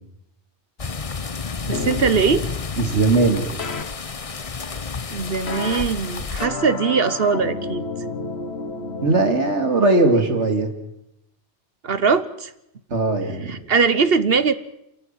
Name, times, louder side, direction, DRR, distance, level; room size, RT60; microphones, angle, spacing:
sound 1, 0.8-6.5, left 5 dB, 35° left, 0.9 m, -30 dB
sound 2, 1.7-2.1 3.6-3.8 5.5-5.8 6.4-9.2, left 4 dB, 65° left, 1.8 m, -29 dB
voice 1, 1.7-2.5 5.1-7.8 11.8-12.5 13.5-14.5, right 5 dB, 60° right, 14 dB, 1.2 m, -21 dB
voice 2, 2.8-3.5 9.0-10.7 12.9-13.5, right 2 dB, 85° right, 6 dB, 3.0 m, -19 dB
28.5 x 14.0 x 9.2 m, 0.83 s
omnidirectional pair, 1.2 m